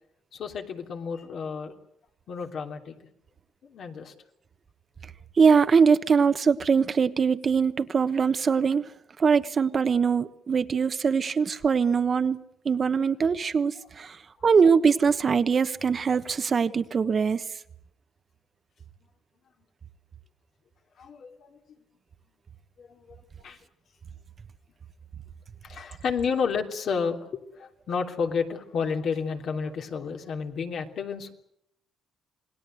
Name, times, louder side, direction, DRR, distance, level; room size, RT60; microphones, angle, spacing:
voice 1, 0.3-1.7 2.3-2.9 3.6-4.1 14.4-14.5 21.0-21.6 22.8-23.6 25.6-31.3, left 5 dB, 65° left, 3.1 m, -31 dB
voice 2, 5.4-8.8 9.2-14.2 14.4-17.4, right 6 dB, 40° right, 1.2 m, -22 dB
27.5 x 20.0 x 7.8 m
cardioid pair, 90°, 0 cm